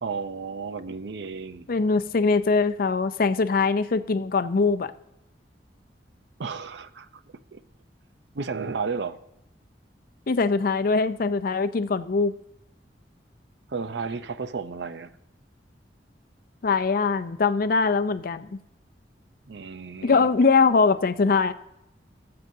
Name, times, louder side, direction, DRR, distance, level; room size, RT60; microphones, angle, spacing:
voice 1, 0.0-1.7 6.4-7.2 7.5-7.6 8.3-9.2 13.7-15.1 19.5-20.3, right 5 dB, 70° right, 12 dB, 0.5 m, -33 dB
voice 2, 1.7-4.9 10.3-12.3 16.6-18.6 20.0-21.5, left 4 dB, 55° left, 12 dB, 0.5 m, -22 dB
18.5 x 7.8 x 2.7 m, 0.90 s
head